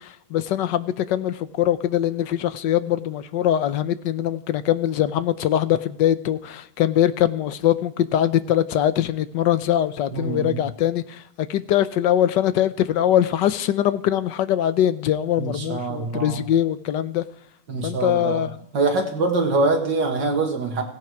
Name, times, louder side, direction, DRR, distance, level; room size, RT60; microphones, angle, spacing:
voice 1, 0.3-17.2 17.8-18.5, left 11 dB, 85° left, 1.4 m, -22 dB
voice 2, 10.1-10.6 15.4-16.4 17.7-18.5 18.7-20.8, right 3 dB, 85° right, 2.8 m, -24 dB
16.5 x 16.5 x 4.7 m
omnidirectional pair, 1.9 m